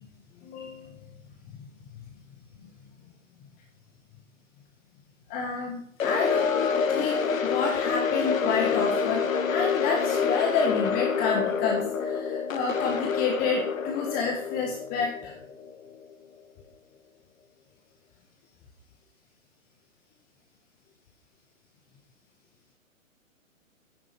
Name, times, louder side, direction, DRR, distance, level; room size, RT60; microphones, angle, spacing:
voice 1, 0.4-1.0 1.6-1.7 2.6-2.7 5.3-9.2 9.5-15.3, left 5 dB, 20° left, 1 dB, 1.6 m, -29 dB
sound 1, 6.0-16.1, left 6 dB, 75° left, 1.4 m, -27 dB
10.5 x 10.0 x 3.5 m, 0.65 s
hypercardioid pair, 140°, 41 cm